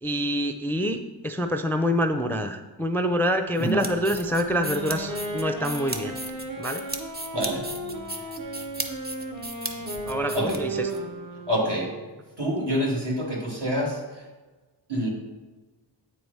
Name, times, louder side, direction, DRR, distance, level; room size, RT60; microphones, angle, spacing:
voice 1, 0.0-6.2 6.6-6.8 10.0-10.9, equal, 5° left, 7 dB, 0.4 m, -26 dB
sound 1, 3.6-11.0, right 1 dB, 20° right, 1.0 m, -36 dB
Wind instrument woodwind instrument, 4.0-12.1, right 1 dB, 45° right, 1.0 m, -36 dB
sound 2, 4.5-6.6 7.2-12.3, right 5 dB, 90° right, 1.1 m, -41 dB
voice 2, 7.3-7.7 10.3-10.6 11.5-12.0 12.4-14.2 14.9-15.1, equal, 60° right, -3 dB, 2.3 m, -27 dB
8.3 x 4.6 x 5.5 m, 1.2 s
wide cardioid pair, 65°, 45 cm